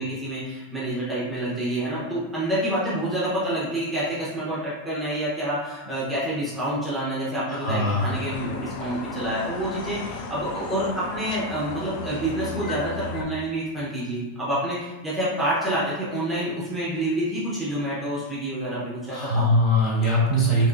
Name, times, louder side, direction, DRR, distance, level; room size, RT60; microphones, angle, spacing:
voice 1, 0.0-19.5, right 1 dB, 5° right, -8 dB, 0.8 m, -28 dB
voice 2, 7.5-8.1 19.1-20.7, equal, 30° left, -6 dB, 1.3 m, -21 dB
sound 1, 8.0-13.2, left 3 dB, 50° left, 0.4 m, -35 dB
3.5 x 3.0 x 2.5 m, 1.2 s
supercardioid pair, 155°, 0 cm